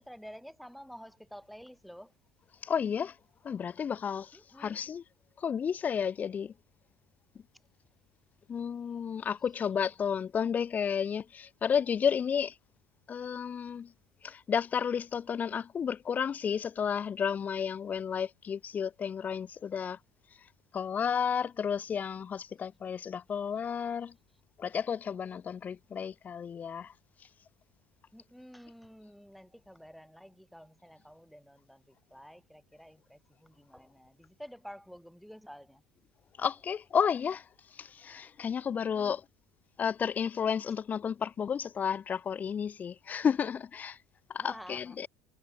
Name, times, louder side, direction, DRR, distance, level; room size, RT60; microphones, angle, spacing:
voice 1, 0.0-2.1 4.3-4.8 28.1-35.8 38.8-39.2 44.4-45.0, equal, ahead, 3.3 m, -50 dB
voice 2, 2.6-3.2 3.4-5.0 5.4-6.5 8.5-12.5 13.1-13.9 14.2-20.0 20.7-24.1 24.6-26.9 36.4-37.5 37.7-39.2 39.8-44.0 44.3-45.1, left 7 dB, 25° left, 0.6 m, -32 dB
cardioid pair, 145°, 6 cm